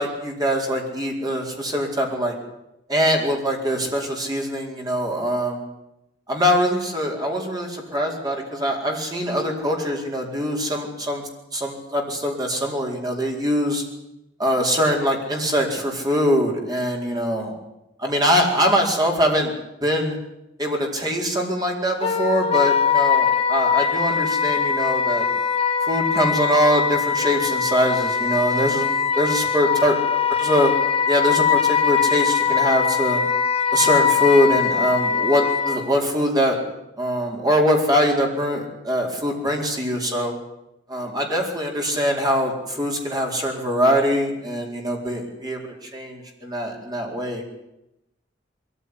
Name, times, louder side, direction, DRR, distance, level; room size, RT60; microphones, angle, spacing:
voice 1, 0.0-2.3 2.9-5.6 6.3-13.8 14.4-17.5 18.0-19.5 19.8-20.2 20.6-25.3 25.8-28.9 29.2-30.0 30.4-30.7 31.1-33.2 33.7-36.6 37.0-40.3 40.9-47.4, equal, 20° right, 1 dB, 4.7 m, -23 dB
Wind instrument woodwind instrument, 22.0-35.8, left 6 dB, 30° left, 2.5 m, -21 dB
22.0 x 15.0 x 10.0 m, 0.89 s
head